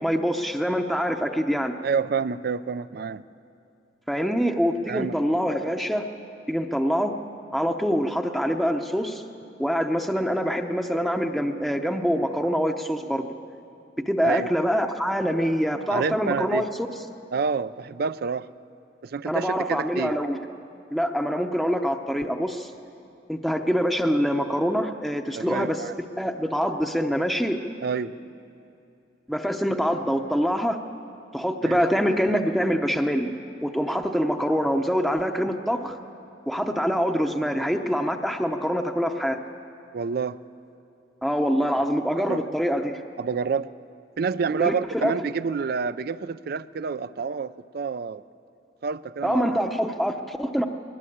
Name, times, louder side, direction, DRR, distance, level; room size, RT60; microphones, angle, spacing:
voice 1, 0.0-1.7 4.1-6.1 6.5-7.2 7.5-9.2 9.6-13.3 14.1-16.7 19.3-20.5 20.9-22.7 23.3-25.8 26.2-27.6 29.3-30.8 31.3-33.3 33.6-36.0 36.5-39.4 41.2-43.0 44.6-45.2 49.2-50.7, equal, ahead, 3 dB, 0.7 m, -25 dB
voice 2, 1.8-3.2 4.9-5.1 14.2-14.5 15.9-16.6 17.3-18.5 19.0-20.2 25.4-25.9 27.8-28.1 31.6-31.8 39.9-40.4 42.3-42.4 43.2-43.7 44.2-48.2 48.8-49.7, right 5 dB, 55° right, 16 dB, 0.4 m, -28 dB
21.0 x 18.5 x 8.6 m, 2.7 s
head